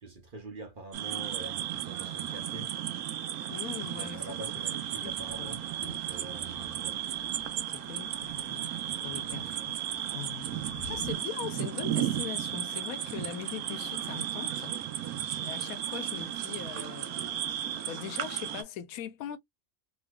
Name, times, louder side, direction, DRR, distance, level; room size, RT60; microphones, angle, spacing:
voice 1, 0.0-2.7 4.0-7.0 9.0-9.5, right 2 dB, 45° right, 0.8 m, -45 dB
sound 1, 0.9-18.6, right 11 dB, 85° right, 1.1 m, -34 dB
voice 2, 3.5-4.4 5.0-5.5 5.8-6.0 7.7-8.7 9.0-9.7 10.1-10.5 10.9-14.9 15.4-17.4 17.9-19.4, left 10 dB, 80° left, 1.0 m, -41 dB
Thunder / Rain, 5.1-11.1, left 1 dB, 45° left, 1.3 m, -51 dB
3.1 x 3.0 x 2.2 m
omnidirectional pair, 1.5 m